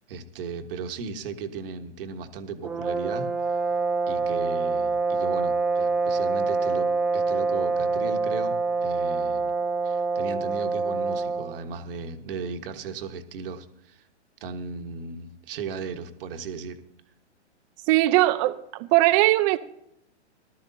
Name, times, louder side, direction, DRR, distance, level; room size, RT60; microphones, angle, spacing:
voice 1, 0.1-3.6 4.1-8.5 8.8-9.5 9.8-14.1 14.4-16.8, right 5 dB, 50° right, 1.5 m, -36 dB
sound 1, 2.6-11.6, right 3 dB, 5° right, 0.9 m, -26 dB
voice 2, 17.9-19.6, right 17 dB, 25° right, 0.6 m, -20 dB
18.5 x 12.5 x 2.8 m
hypercardioid pair, 125°, 35 cm